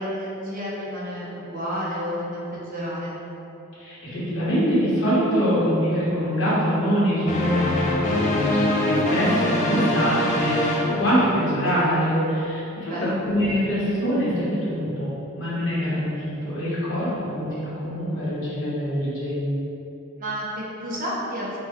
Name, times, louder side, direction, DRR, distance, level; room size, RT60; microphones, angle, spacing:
voice 1, 0.0-3.2 9.7-10.4 12.8-13.2 20.2-21.6, equal, 40° right, -7 dB, 1.0 m, -31 dB
voice 2, 3.8-19.6, equal, 70° left, -9 dB, 1.2 m, -24 dB
sound 1, 7.3-11.7, left 1 dB, 35° left, 0.4 m, -24 dB
5.0 x 2.4 x 3.5 m, 3.0 s
head